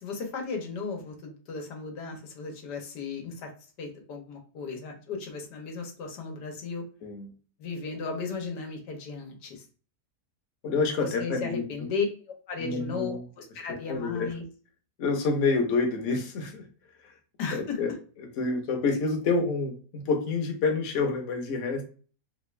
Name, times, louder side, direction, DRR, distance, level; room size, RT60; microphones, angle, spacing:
voice 1, 0.0-3.5 3.8-6.8 7.6-9.6 11.0-12.1 12.5-14.4 17.4-17.8, left 4 dB, 90° left, 2 dB, 1.5 m, -35 dB
voice 2, 10.6-11.7 12.6-13.2 13.7-14.3 15.0-16.6 17.5-17.9 18.2-21.8, left 4 dB, 55° left, 3 dB, 1.0 m, -28 dB
3.4 x 2.4 x 3.1 m, 0.40 s
omnidirectional pair, 1.7 m